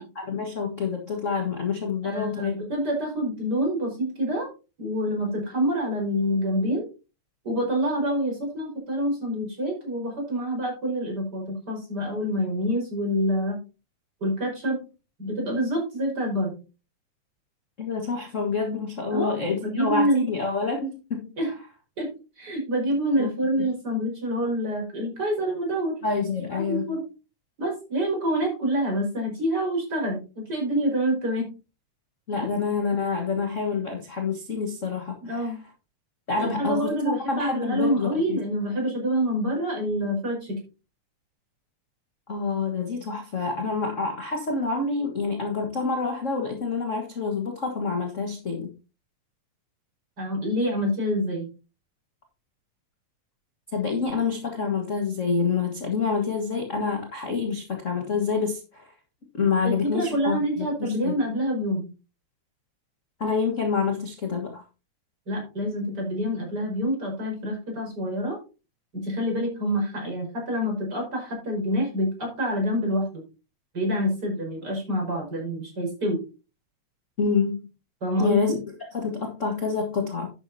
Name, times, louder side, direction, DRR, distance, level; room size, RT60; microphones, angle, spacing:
voice 1, 0.0-2.5 17.8-21.3 23.2-23.3 26.0-27.0 32.3-35.5 36.3-36.9 37.3-38.4 42.3-48.7 53.7-58.9 59.4-61.2 63.2-64.6 77.2-77.7 78.2-78.6 78.9-80.3, left 5 dB, 35° left, 2 dB, 1.4 m, -27 dB
voice 2, 2.0-4.5 4.8-6.9 7.4-13.6 14.2-14.8 15.2-16.6 19.1-19.4 19.6-20.3 21.4-21.5 22.0-22.1 22.4-26.0 26.5-27.0 27.6-31.5 35.2-35.6 36.4-40.6 50.2-51.5 59.6-61.9 65.3-68.4 68.9-73.2 73.7-76.2 78.0-78.5, equal, 35° right, 0 dB, 5.5 m, -27 dB
11.0 x 9.6 x 2.7 m, 0.32 s
omnidirectional pair, 3.3 m